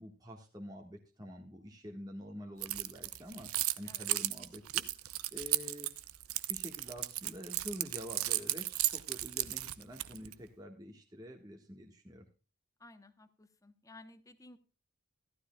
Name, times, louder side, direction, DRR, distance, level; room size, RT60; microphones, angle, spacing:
voice 1, 0.0-3.5 3.8-4.9 5.3-5.9 6.5-12.2, equal, 15° right, 1 dB, 1.5 m, -47 dB
Keys jangling, 2.6-10.3, right 16 dB, 75° right, 0.7 m, -35 dB
voice 2, 12.8-14.6, left 2 dB, 15° left, 11 dB, 1.0 m, -56 dB
14.5 x 12.5 x 2.3 m, 0.33 s
head